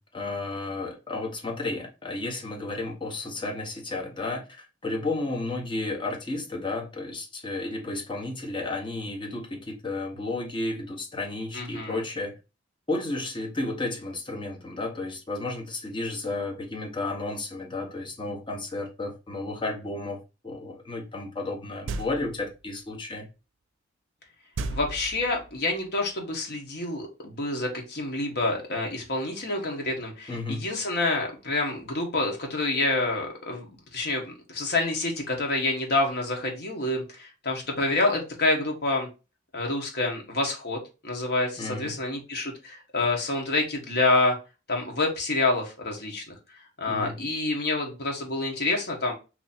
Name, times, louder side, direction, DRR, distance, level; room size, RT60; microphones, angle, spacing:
voice 1, 0.0-12.4 12.9-20.2 20.4-23.3 30.3-30.6 41.6-41.9 46.9-47.2, left 2 dB, 25° left, 0.9 m, -32 dB
voice 2, 11.5-12.0 24.7-39.1 39.5-44.4 44.7-46.3 46.8-49.1, left 2 dB, 55° left, 1.2 m, -27 dB
sound 1, 21.9-22.5 24.6-25.6, right 3 dB, 90° right, 0.4 m, -34 dB
3.0 x 2.7 x 4.1 m
head